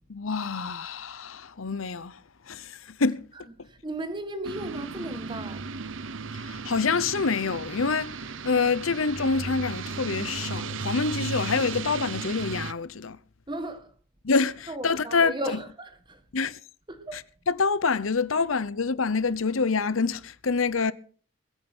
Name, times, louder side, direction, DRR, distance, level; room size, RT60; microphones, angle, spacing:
voice 1, 0.1-2.2 2.5-3.2 6.3-8.2 8.4-13.2 14.2-15.3 16.3-16.6 17.1-17.2 17.5-20.9, left 4 dB, 80° left, 0.9 m, -26 dB
voice 2, 3.6-5.7 13.5-13.9 14.7-16.2 16.9-17.3, right 1 dB, 20° right, 1.8 m, -35 dB
sound 1, 4.4-12.7, right 4 dB, 65° right, 0.8 m, -35 dB
21.5 x 8.9 x 6.2 m
head